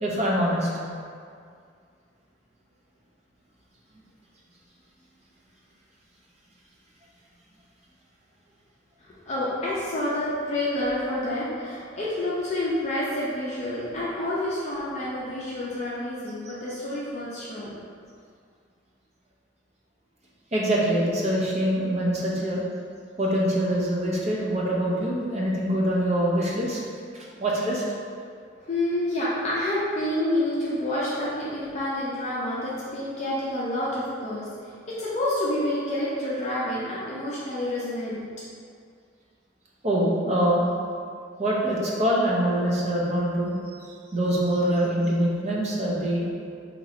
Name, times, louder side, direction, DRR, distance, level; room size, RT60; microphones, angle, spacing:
voice 1, 0.0-0.7 20.5-22.6 23.2-26.8 27.1-27.8 39.8-40.7 41.4-46.2, right 1 dB, 35° right, -4 dB, 0.6 m, -24 dB
voice 2, 9.0-17.8 28.7-38.2, left 1 dB, 35° left, -8 dB, 0.5 m, -28 dB
2.9 x 2.6 x 4.2 m, 2.2 s
head